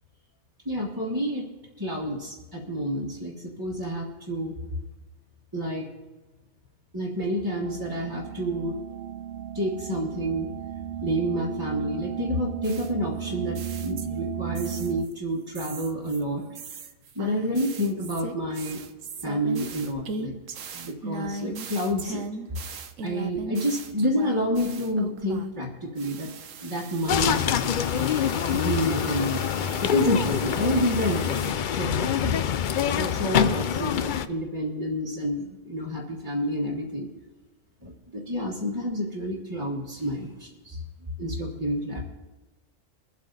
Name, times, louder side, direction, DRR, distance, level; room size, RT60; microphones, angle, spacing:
voice 1, 0.6-1.5 1.8-4.6 5.5-5.9 6.9-8.8 9.5-10.5 11.0-16.4 17.1-18.8 19.2-20.4 20.7-22.3 23.0-26.3 26.6-28.1 28.5-29.5 29.8-32.3 32.9-37.1 37.8-40.8 41.2-42.0, equal, 15° right, -6 dB, 1.5 m, -29 dB
sound 1, 7.6-15.1, right 9 dB, 60° right, 0.6 m, -35 dB
sound 2, 12.6-15.1 15.6-25.7 26.0-31.5, right 4 dB, 90° right, 1.2 m, -39 dB
sound 3, 27.1-34.3, left 9 dB, 60° left, 0.5 m, -25 dB
23.0 x 8.2 x 4.0 m, 1.2 s
omnidirectional pair, 1.3 m